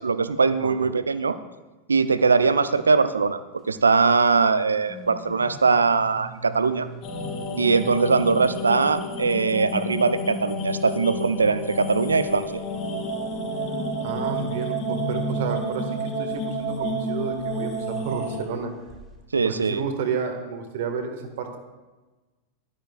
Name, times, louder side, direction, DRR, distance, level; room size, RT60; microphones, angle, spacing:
voice 1, 0.0-1.4 1.9-3.4 3.7-6.9 7.6-12.6 19.3-19.8, right 4 dB, 75° right, 13 dB, 0.5 m, -21 dB
sound 1, 4.9-8.5 9.1-12.3 13.4-18.6 18.9-19.2, equal, 10° right, 2.2 m, -37 dB
sound 2, 7.0-18.4, equal, 40° left, 3.9 m, -30 dB
voice 2, 14.0-18.7 19.4-21.6, right 6 dB, 55° right, 5 dB, 1.6 m, -31 dB
16.0 x 12.5 x 2.4 m, 1.2 s
figure-of-eight pair, 90°, 0 cm